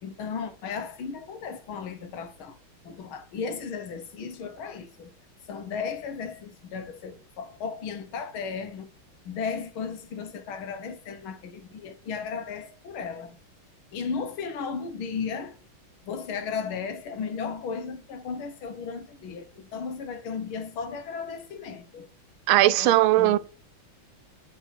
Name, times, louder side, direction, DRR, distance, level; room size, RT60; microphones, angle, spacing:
voice 1, 0.0-2.6 2.8-5.1 5.5-8.9 9.3-13.4 13.9-15.6 16.0-22.1 22.8-23.4, left 5 dB, 80° left, 1.9 m, -35 dB
voice 2, 22.5-23.4, right 15 dB, 85° right, 1.4 m, -19 dB
10.5 x 4.4 x 4.3 m
omnidirectional pair, 2.2 m